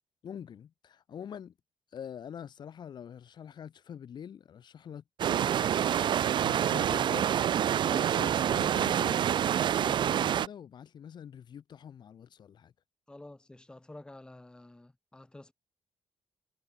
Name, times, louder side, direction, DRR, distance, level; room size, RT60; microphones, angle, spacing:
voice 1, 0.2-1.5 1.9-6.0 6.4-7.3 7.8-9.3 9.5-12.7, left 8 dB, 45° left, 1.0 m, -45 dB
sound 1, 5.2-10.5, right 10 dB, 50° right, 0.5 m, -27 dB
voice 2, 13.1-15.5, left 2 dB, 10° left, 2.8 m, -50 dB
wide cardioid pair, 180°, 11 cm